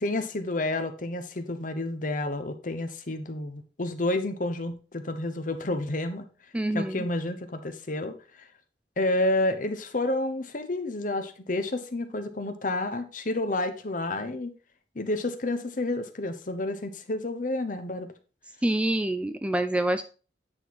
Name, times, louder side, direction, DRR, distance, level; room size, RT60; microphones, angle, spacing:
voice 1, 0.0-6.2 6.7-8.5 9.0-14.5 14.9-18.1, left 2 dB, 45° left, 8 dB, 0.9 m, -30 dB
voice 2, 6.5-7.1 18.6-20.0, right 1 dB, 5° right, 10 dB, 0.3 m, -26 dB
9.0 x 4.2 x 4.6 m, 0.36 s
head